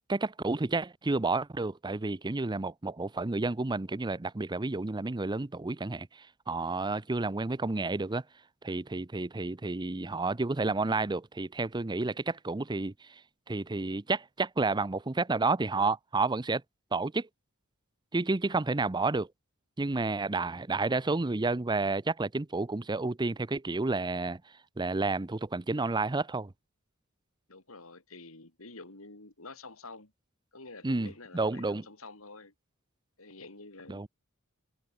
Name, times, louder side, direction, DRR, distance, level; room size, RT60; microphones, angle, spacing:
voice 1, 0.1-8.2 8.6-13.2 13.5-16.6 16.9-17.3 18.1-19.3 19.8-24.4 24.8-26.5 30.8-31.8 33.9-34.1, right 3 dB, 20° right, 0.6 m, -30 dB
voice 2, 27.5-30.1 30.5-32.5 33.2-34.0, left 3 dB, 75° left, 4.0 m, -48 dB
head